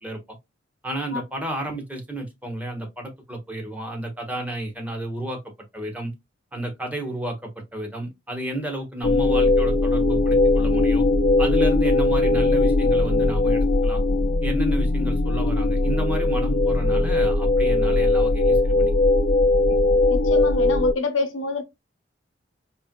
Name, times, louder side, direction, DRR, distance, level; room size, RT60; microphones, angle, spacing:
voice 1, 0.8-5.4 5.7-6.1 6.5-11.0 11.4-14.0 14.4-18.9 19.7-19.8, right 1 dB, 10° right, 1.2 m, -32 dB
sound 1, 9.0-20.9, left 2 dB, 50° left, 0.6 m, -20 dB
voice 2, 20.1-21.6, left 3 dB, 80° left, 0.9 m, -27 dB
4.4 x 3.3 x 2.2 m
head